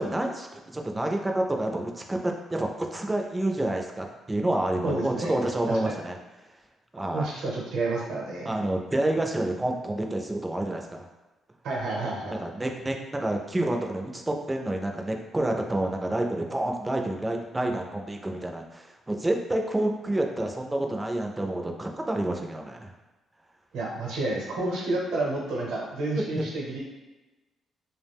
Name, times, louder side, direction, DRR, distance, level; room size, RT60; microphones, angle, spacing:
voice 1, 0.0-6.2 6.9-7.3 8.5-11.1 12.4-22.9 26.2-26.5, right 1 dB, 15° right, 2 dB, 0.3 m, -28 dB
voice 2, 4.8-5.3 5.7-6.0 7.0-8.6 11.6-12.4 23.7-26.8, right 2 dB, 80° right, -3 dB, 0.7 m, -30 dB
2.3 x 2.1 x 3.4 m, 1.1 s
cardioid pair, 90°, 0 cm